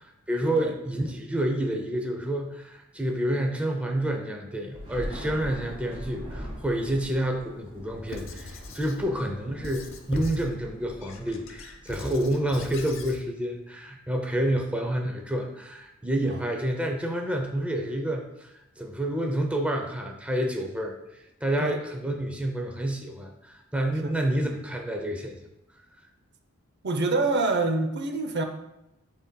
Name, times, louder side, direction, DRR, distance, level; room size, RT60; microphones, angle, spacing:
voice 1, 0.3-21.0 21.4-25.4, right 1 dB, 5° right, 2 dB, 0.6 m, -29 dB
Thunder / Rain, 4.7-12.3, equal, 30° right, 1.6 m, -42 dB
Squeak / Writing, 8.1-9.0 9.6-10.5 11.0-13.2, left 2 dB, 65° left, 0.8 m, -40 dB
voice 2, 26.8-28.4, right 3 dB, 55° right, 6 dB, 0.6 m, -26 dB
11.0 x 4.0 x 2.2 m, 0.90 s
head